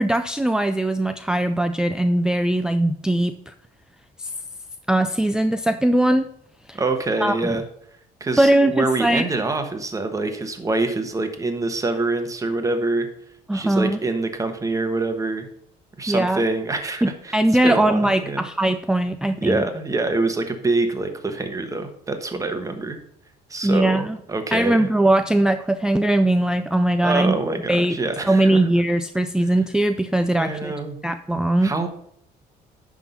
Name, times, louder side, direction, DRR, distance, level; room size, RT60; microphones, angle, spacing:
voice 1, 0.0-3.5 4.2-4.3 4.9-6.3 6.7-6.8 7.2-7.5 8.4-9.2 13.5-14.0 16.1-16.4 17.0-19.6 23.6-24.2 24.5-27.4 27.7-28.0 28.2-30.7 31.0-31.7, right 1 dB, 5° right, 9 dB, 0.3 m, -20 dB
voice 2, 6.7-7.6 8.2-13.1 13.5-15.5 16.0-17.4 17.6-18.5 19.4-23.0 23.5-24.9 27.0-28.6 30.3-31.0 31.6-31.9, right 3 dB, 20° right, 6 dB, 1.2 m, -25 dB
10.5 x 3.7 x 5.5 m, 0.69 s
cardioid pair, 110°, 17 cm